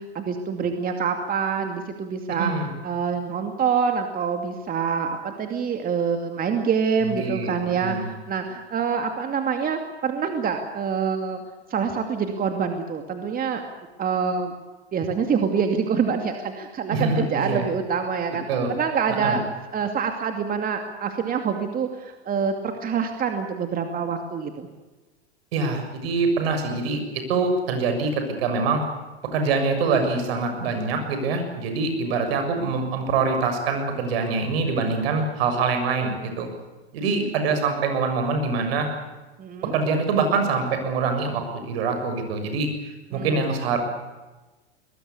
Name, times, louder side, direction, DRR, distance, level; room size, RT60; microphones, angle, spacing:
voice 1, 0.0-2.5 2.8-11.4 11.7-13.6 14.0-14.5 14.9-19.5 19.7-24.7 39.4-39.7 43.1-43.4, right 6 dB, 25° right, 5 dB, 2.5 m, -26 dB
voice 2, 2.4-2.7 7.0-8.1 16.9-17.7 18.5-18.7 19.2-19.4 25.5-28.8 29.3-36.5 36.9-38.9 39.7-42.7 43.1-43.8, right 4 dB, 65° right, 6 dB, 6.9 m, -24 dB
23.0 x 20.5 x 8.4 m, 1.2 s
hypercardioid pair, 105°, 32 cm